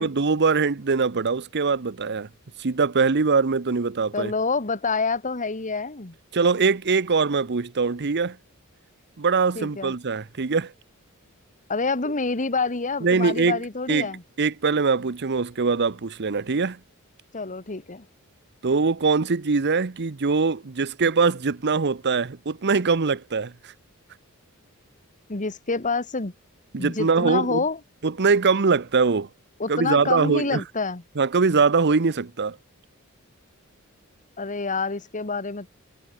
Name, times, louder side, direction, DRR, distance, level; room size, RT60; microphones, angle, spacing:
voice 1, 0.0-2.3 2.6-4.3 6.3-8.4 9.2-10.7 13.0-13.6 13.9-14.1 14.4-16.8 18.6-23.7 26.7-27.6 28.0-29.3 29.7-30.6 31.2-32.6, right 4 dB, 50° right, 0.8 m, -22 dB
voice 2, 4.1-6.1 9.5-9.9 11.7-14.2 17.3-18.0 25.3-26.3 26.8-27.8 29.6-31.0 34.4-35.7, left 4 dB, 35° left, 1.6 m, -27 dB
head